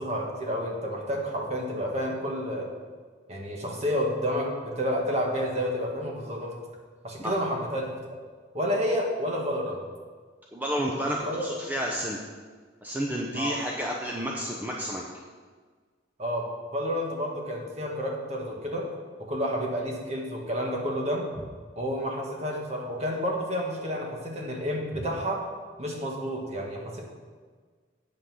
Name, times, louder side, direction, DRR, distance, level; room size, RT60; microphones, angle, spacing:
voice 1, 0.0-2.7 3.3-6.5 7.0-8.0 8.5-9.8 11.2-11.5 13.3-13.6 16.2-16.5 16.7-18.9 19.2-21.2 21.8-25.4 25.8-27.0, equal, 35° right, -1 dB, 1.8 m, -30 dB
voice 2, 10.5-12.2 12.8-15.0, equal, 10° right, -2 dB, 0.7 m, -30 dB
8.4 x 5.8 x 6.3 m, 1.5 s
head